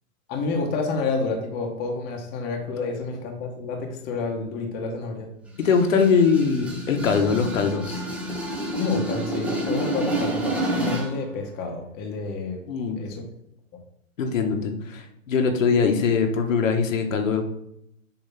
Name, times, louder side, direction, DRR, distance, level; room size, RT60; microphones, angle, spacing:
voice 1, 0.3-5.3 8.8-12.6 13.0-13.2, left 3 dB, 25° left, 2 dB, 1.0 m, -29 dB
sound 1, 5.5-11.2, right 1 dB, 5° right, 0.6 m, -29 dB
voice 2, 5.6-8.0 12.7-13.0 14.2-17.4, left 5 dB, 65° left, 5 dB, 1.3 m, -22 dB
7.0 x 2.9 x 5.8 m, 0.77 s
hypercardioid pair, 140°, 41 cm